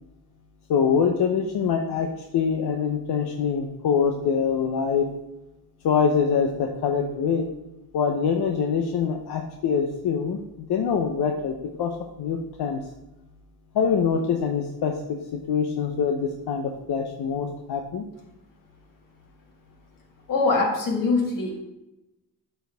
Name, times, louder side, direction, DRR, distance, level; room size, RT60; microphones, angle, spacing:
voice 1, 0.7-5.1 5.8-7.5 7.9-10.4 10.7-11.9 12.2-12.8 13.7-14.9 15.5-18.0, left 6 dB, 80° left, 3 dB, 0.8 m, -24 dB
voice 2, 20.3-21.6, left 3 dB, 55° left, 0 dB, 1.9 m, -23 dB
12.0 x 4.6 x 3.5 m, 0.94 s
wide cardioid pair, 170°, 38 cm